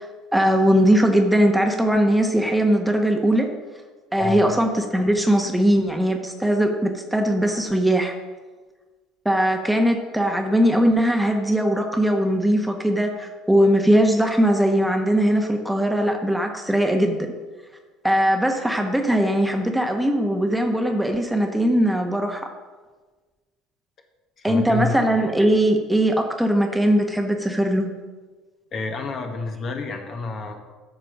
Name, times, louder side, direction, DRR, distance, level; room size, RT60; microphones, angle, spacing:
voice 1, 0.3-3.5 4.1-8.1 9.2-17.2 18.0-22.4 24.4-27.9, equal, 5° right, 3 dB, 1.3 m, -20 dB
voice 2, 24.4-24.9 28.7-30.6, left 3 dB, 40° left, 4 dB, 1.5 m, -29 dB
13.5 x 4.9 x 6.4 m, 1.4 s
figure-of-eight pair, 65°, 0 cm